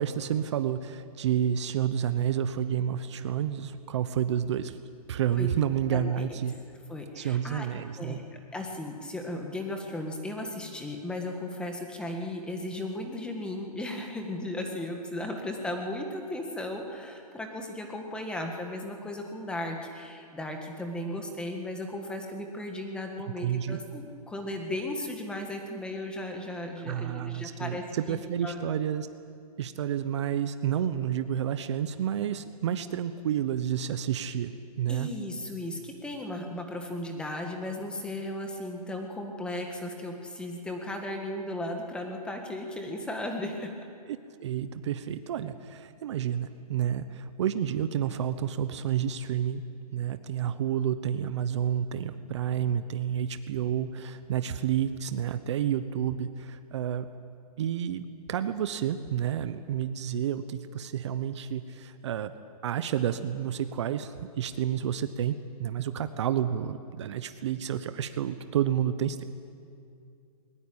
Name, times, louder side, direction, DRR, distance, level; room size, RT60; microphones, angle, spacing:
voice 1, 0.0-4.8 5.1-6.6 7.1-8.2 23.4-23.8 26.9-29.1 29.6-35.1 44.1-49.6 49.9-57.1 57.6-62.3 62.6-69.2, right 9 dB, 45° right, 11 dB, 1.0 m, -30 dB
voice 2, 5.9-6.4 6.9-8.2 8.5-28.6 34.9-43.7, left 1 dB, 5° left, 3 dB, 1.8 m, -36 dB
21.5 x 20.0 x 8.8 m, 2.4 s
hypercardioid pair, 160°, 20 cm